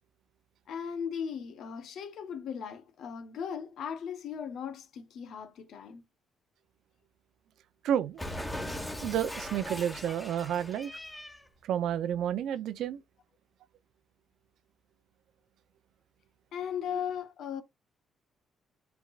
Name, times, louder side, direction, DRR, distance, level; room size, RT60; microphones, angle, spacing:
voice 1, 0.7-6.0 16.5-17.6, left 7 dB, 75° left, 1.2 m, -37 dB
voice 2, 7.8-8.2 9.0-10.9 11.6-13.0, right 10 dB, 80° right, 0.7 m, -30 dB
Cat, 8.2-11.5, left 1 dB, 10° left, 1.5 m, -39 dB
10.5 x 3.6 x 2.5 m
cardioid pair, 90°, 0 cm